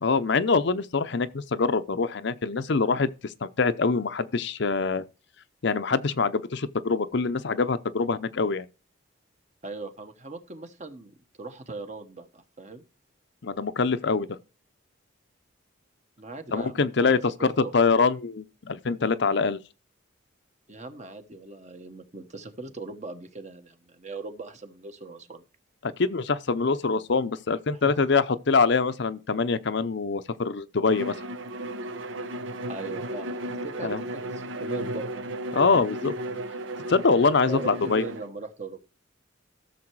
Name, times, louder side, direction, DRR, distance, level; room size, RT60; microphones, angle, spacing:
voice 1, 0.0-5.1 5.6-8.7 13.4-14.3 16.5-19.6 25.8-31.2 33.8-34.0 35.5-36.1 36.9-38.0, left 4 dB, 60° left, 0.6 m, -24 dB
voice 2, 9.6-12.8 16.2-17.7 20.7-25.4 27.7-28.0 32.7-33.3 33.6-35.1 37.5-38.8, right 3 dB, 35° right, 1.2 m, -40 dB
Bowed string instrument, 30.9-38.3, right 1 dB, 70° right, 0.8 m, -34 dB
13.5 x 6.8 x 4.7 m
head